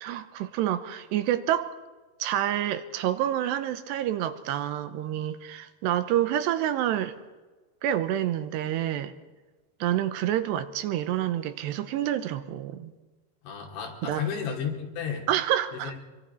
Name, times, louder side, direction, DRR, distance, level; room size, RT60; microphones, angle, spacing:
voice 1, 0.0-1.7 2.2-7.1 7.8-9.1 9.8-12.9 14.0-14.2 15.3-15.9, right 11 dB, 80° right, 3.0 m, -28 dB
voice 2, 13.4-15.3 15.8-16.0, left 7 dB, 90° left, 5.2 m, -32 dB
25.5 x 23.5 x 4.5 m
omnidirectional pair, 5.0 m